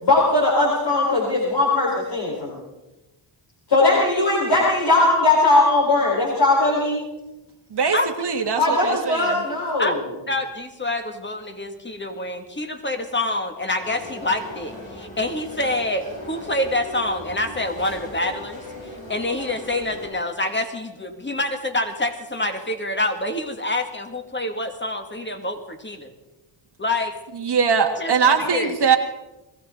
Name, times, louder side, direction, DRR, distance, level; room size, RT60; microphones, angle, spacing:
voice 1, 0.0-2.6 3.7-7.0 8.6-10.0, left 2 dB, 55° left, -4 dB, 4.5 m, -19 dB
voice 2, 7.7-9.4 27.4-29.0, right 6 dB, 55° right, 3 dB, 1.7 m, -21 dB
voice 3, 10.3-18.6 19.1-26.1 26.8-27.1 28.0-28.7, left 2 dB, 20° left, 5 dB, 2.3 m, -26 dB
sound 1, 13.8-20.1, left 1 dB, 85° left, 7.4 m, -38 dB
22.0 x 15.5 x 3.9 m, 1.0 s
cardioid pair, 70°, 49 cm